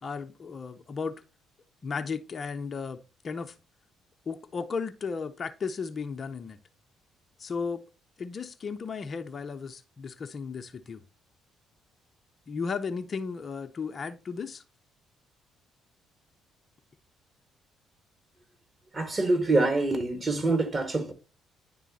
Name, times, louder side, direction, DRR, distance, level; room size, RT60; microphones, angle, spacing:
voice 1, 0.0-1.2 1.8-3.6 4.3-6.6 7.4-7.8 8.2-11.0 12.5-14.6, left 5 dB, 40° left, 0.6 m, -35 dB
voice 2, 18.9-21.1, right 2 dB, 30° right, 1.5 m, -25 dB
10.0 x 3.7 x 2.8 m
figure-of-eight pair, 45°, 0 cm